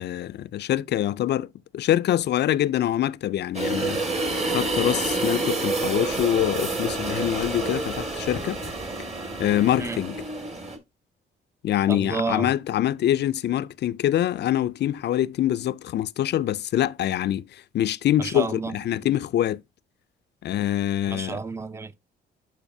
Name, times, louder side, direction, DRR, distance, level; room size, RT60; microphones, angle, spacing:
voice 1, 0.0-4.0 4.5-8.6 9.4-10.2 11.6-19.6 20.4-21.4, left 12 dB, 60° left, 0.4 m, -25 dB
sound 1, 3.5-10.8, right 3 dB, 35° right, 2.2 m, -28 dB
voice 2, 11.9-12.5 18.2-18.8 21.1-21.9, right 4 dB, 15° right, 0.5 m, -30 dB
11.5 x 4.8 x 2.7 m
cardioid pair, 90°, 20 cm